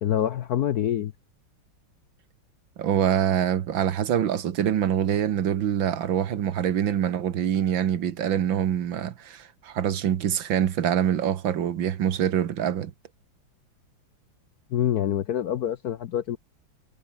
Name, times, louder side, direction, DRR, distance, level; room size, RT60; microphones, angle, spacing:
voice 1, 0.0-1.1 14.7-16.4, left 11 dB, 65° left, 1.0 m, -26 dB
voice 2, 2.8-12.9, right 9 dB, 70° right, 2.0 m, -25 dB
omnidirectional pair, 2.2 m